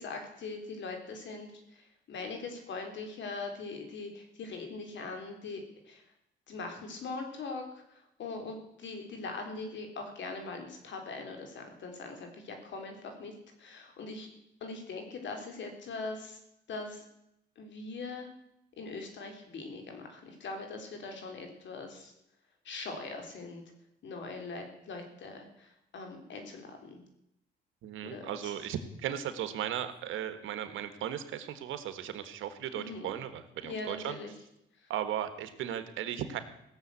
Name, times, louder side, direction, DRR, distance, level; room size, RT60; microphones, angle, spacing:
voice 1, 0.0-6.0 6.5-7.6 8.2-13.3 13.6-14.3 14.6-16.4 16.7-17.0 17.6-18.3 18.8-22.1 22.7-23.6 24.0-27.0 28.0-28.5 32.7-33.1 33.6-34.3, left 3 dB, 65° left, 4 dB, 3.6 m, -41 dB
voice 2, 27.8-34.2 34.9-36.4, right 10 dB, 85° right, 10 dB, 1.5 m, -36 dB
17.0 x 7.1 x 8.4 m, 0.81 s
cardioid pair, 90°, 20 cm